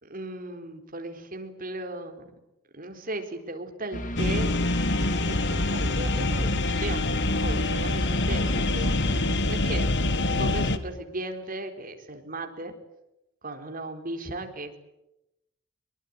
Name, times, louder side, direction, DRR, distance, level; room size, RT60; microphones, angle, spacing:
voice 1, 0.0-2.3 2.7-4.5 5.3-8.9 9.5-9.9 10.3-12.7 13.4-14.8, right 2 dB, 45° right, 5 dB, 4.1 m, -36 dB
sound 1, 3.9-9.4, equal, 40° left, 2.5 m, -35 dB
sound 2, 4.2-10.8, left 2 dB, 60° left, 1.9 m, -25 dB
24.5 x 23.5 x 9.5 m, 0.88 s
head